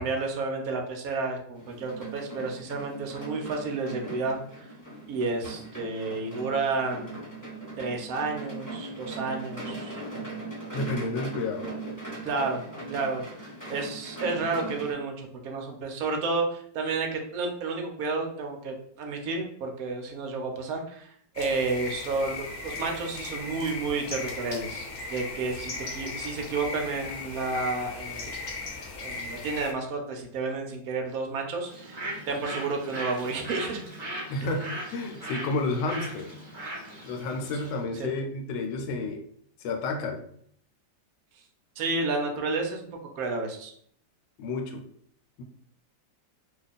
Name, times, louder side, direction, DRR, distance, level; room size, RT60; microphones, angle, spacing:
voice 1, 0.0-4.7 5.1-7.2 7.8-10.0 12.2-13.2 13.7-28.3 29.0-33.8 37.9-38.1 41.8-42.9 43.2-43.7, right 3 dB, 65° right, 2 dB, 0.9 m, -31 dB
sound 1, 1.5-14.9, right 2 dB, 15° left, 0.6 m, -39 dB
voice 2, 10.7-11.7 34.3-36.3 37.0-39.3 39.6-40.3 44.4-44.8 45.4-45.5, left 2 dB, 75° left, 3 dB, 1.2 m, -31 dB
sound 2, 21.4-29.7, left 3 dB, 60° left, 0.9 m, -37 dB
Bird, 31.6-37.8, right 1 dB, 35° right, 0.6 m, -39 dB
2.9 x 2.2 x 4.0 m, 0.64 s
omnidirectional pair, 2.0 m